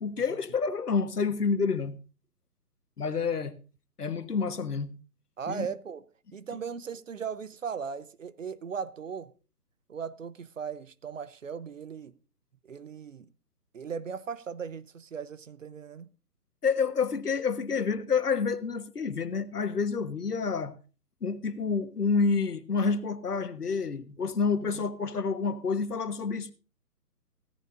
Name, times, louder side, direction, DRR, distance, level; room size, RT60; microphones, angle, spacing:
voice 1, 0.0-2.0 3.0-3.5 4.0-4.9 5.5-5.7 16.6-20.7 21.2-26.5, left 5 dB, 70° left, 1.4 m, -28 dB
voice 2, 5.4-6.0 6.3-9.3 9.9-12.1 12.6-13.3 13.7-16.1 24.6-24.8, right 6 dB, 50° right, 0.9 m, -38 dB
16.0 x 14.5 x 2.6 m
figure-of-eight pair, 140°, 48 cm